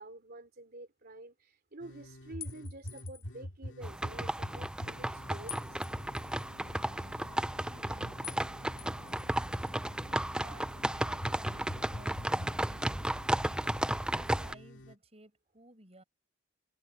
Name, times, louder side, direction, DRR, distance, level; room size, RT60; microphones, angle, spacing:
voice 1, 0.0-5.8, right 2 dB, 50° right, 3.3 m, -49 dB
sound 1, 1.8-14.9, equal, 75° left, 2.0 m, -47 dB
sound 2, 2.4-3.4 5.5-6.5 8.2-8.5 8.8-9.7, left 12 dB, 50° left, 1.7 m, -48 dB
sound 3, 3.8-14.5, right 1 dB, 5° right, 0.3 m, -34 dB
voice 2, 6.6-16.0, right 1 dB, 30° right, 7.6 m, -57 dB
head